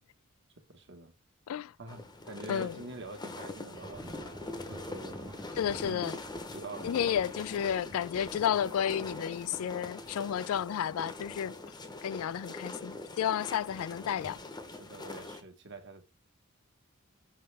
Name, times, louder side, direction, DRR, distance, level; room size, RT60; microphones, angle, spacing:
voice 1, 0.7-1.1 1.8-4.4 4.7-5.5 5.8-6.2 6.5-7.2 7.8-8.0 11.4-11.5 14.8-16.0, right 2 dB, 55° right, 1.4 m, -46 dB
sound 1, 1.9-15.4, left 2 dB, 20° left, 0.8 m, -43 dB
voice 2, 2.5-2.8 5.6-6.2 6.8-11.6 12.0-14.4, left 9 dB, 75° left, 0.3 m, -32 dB
Thunder, 3.8-14.9, right 1 dB, 20° right, 0.7 m, -52 dB
5.5 x 5.5 x 3.4 m
head